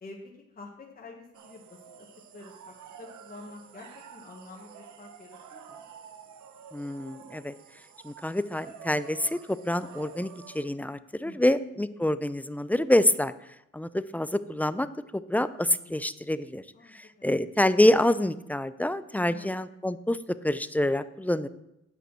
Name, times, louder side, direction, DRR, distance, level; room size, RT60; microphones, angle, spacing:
voice 1, 0.0-2.1 2.3-5.8 11.2-11.4 16.7-17.3 19.1-19.5, left 3 dB, 30° left, -1 dB, 1.5 m, -48 dB
sound 1, 1.3-10.6, right 7 dB, 70° right, 0.9 m, -49 dB
voice 2, 6.7-7.5 8.0-13.3 13.7-16.6 16.9-21.5, left 1 dB, 5° left, 13 dB, 0.4 m, -27 dB
9.0 x 5.5 x 6.1 m, 0.84 s
cardioid pair, 90°, 30 cm